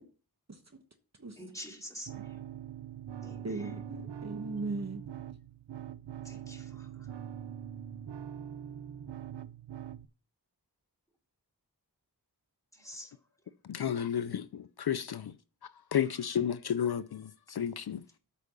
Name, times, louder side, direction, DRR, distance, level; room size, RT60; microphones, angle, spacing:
voice 1, 1.4-2.4 3.2-3.5 6.2-7.1 12.7-13.2, equal, 10° left, 2.7 m, -47 dB
sound 1, 2.1-10.1, right 9 dB, 85° right, 0.6 m, -43 dB
voice 2, 3.4-5.0, right 3 dB, 40° right, 1.2 m, -38 dB
voice 3, 13.7-15.3 15.9-18.0, left 9 dB, 65° left, 0.5 m, -32 dB
8.4 x 5.0 x 6.8 m
wide cardioid pair, 55°, 41 cm